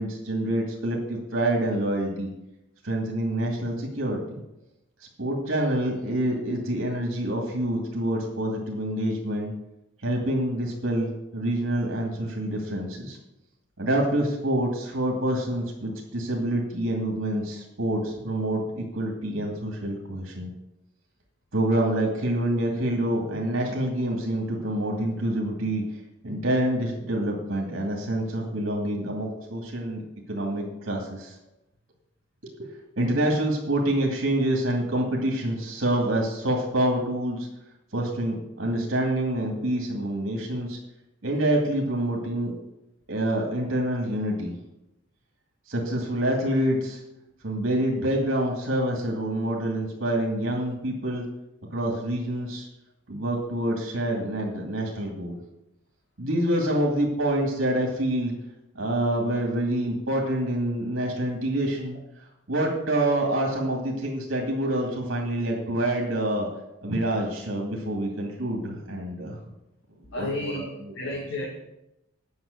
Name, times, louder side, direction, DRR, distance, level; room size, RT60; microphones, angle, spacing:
voice 1, 0.0-2.3 2.8-4.4 5.2-9.5 10.0-13.2 13.8-20.5 21.5-25.8 26.2-30.0 30.3-31.3 32.6-32.7 33.0-37.5 37.9-40.8 41.2-42.5 43.1-44.5 45.7-47.0 47.4-51.3 51.7-52.7 53.1-55.4 56.2-58.3 58.7-62.0 62.5-66.5 66.8-69.4 70.2-70.3, right 1 dB, 70° right, 0 dB, 2.2 m, -27 dB
voice 2, 70.1-71.5, left 1 dB, 65° left, -3 dB, 2.2 m, -32 dB
9.6 x 6.1 x 7.9 m, 0.90 s
head